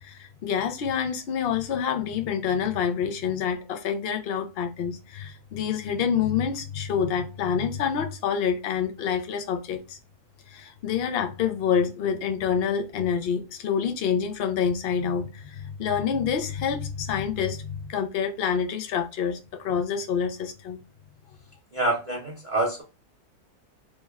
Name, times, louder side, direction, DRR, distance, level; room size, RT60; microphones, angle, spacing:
voice 1, 0.0-10.0 10.5-20.8, left 7 dB, 85° left, 0.5 m, -27 dB
voice 2, 21.7-22.8, right 2 dB, 35° right, 0.7 m, -26 dB
3.2 x 2.1 x 3.4 m
omnidirectional pair, 1.6 m